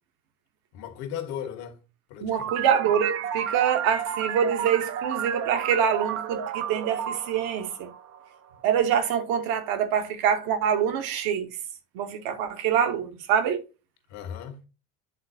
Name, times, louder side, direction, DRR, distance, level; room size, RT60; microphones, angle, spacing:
voice 1, 0.7-1.8 2.1-2.6 14.1-14.6, left 9 dB, 60° left, 1.3 m, -36 dB
voice 2, 2.2-7.9 8.6-11.6 11.9-13.6, right 8 dB, 55° right, 1.2 m, -25 dB
sound 1, 2.3-8.6, right 9 dB, 35° right, 0.6 m, -32 dB
10.0 x 4.0 x 2.6 m
hypercardioid pair, 75°, 44 cm